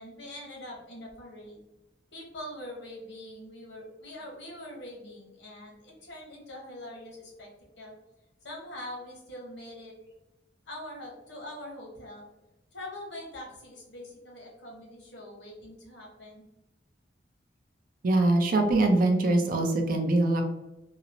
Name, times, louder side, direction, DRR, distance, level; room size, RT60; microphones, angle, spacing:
voice 1, 0.0-1.6 2.1-7.5 7.8-7.9 8.4-9.9 10.7-12.2 12.7-16.4, left 1 dB, 80° left, -2 dB, 0.9 m, -43 dB
voice 2, 18.0-20.4, right 2 dB, 50° right, 4 dB, 0.4 m, -23 dB
2.9 x 2.0 x 2.5 m, 0.98 s
head